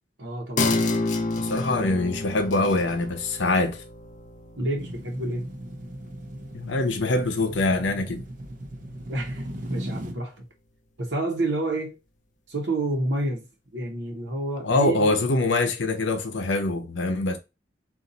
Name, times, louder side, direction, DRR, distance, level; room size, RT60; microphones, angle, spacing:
voice 1, 0.2-0.7 4.6-5.5 9.1-10.5 11.0-12.0 12.5-13.5 13.7-15.2, right 2 dB, 70° right, 1.0 m, -29 dB
sound 1, 0.6-7.6 8.0-8.1, left 2 dB, 45° left, 0.5 m, -30 dB
voice 2, 1.4-3.8 6.5-8.2 14.6-17.4, left 2 dB, 80° left, 0.7 m, -24 dB
sound 2, 4.8-10.1, right 1 dB, 50° right, 0.7 m, -38 dB
4.0 x 2.5 x 3.9 m
head